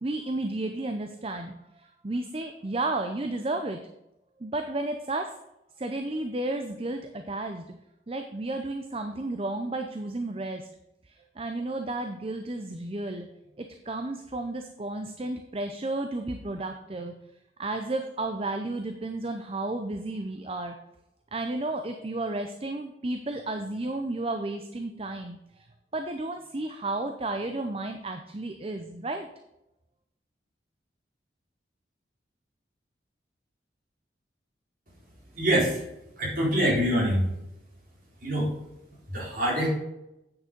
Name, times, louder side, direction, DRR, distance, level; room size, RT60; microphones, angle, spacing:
voice 1, 0.0-3.8 4.4-5.3 5.8-7.6 8.1-10.7 11.1-13.3 13.6-17.1 17.6-20.8 21.3-25.7 25.9-29.3, right 2 dB, 30° right, 6 dB, 0.5 m, -32 dB
voice 2, 35.4-35.8 36.2-37.3 38.2-38.5 39.1-39.7, equal, 45° right, -5 dB, 4.0 m, -25 dB
8.9 x 6.3 x 5.2 m, 0.88 s
head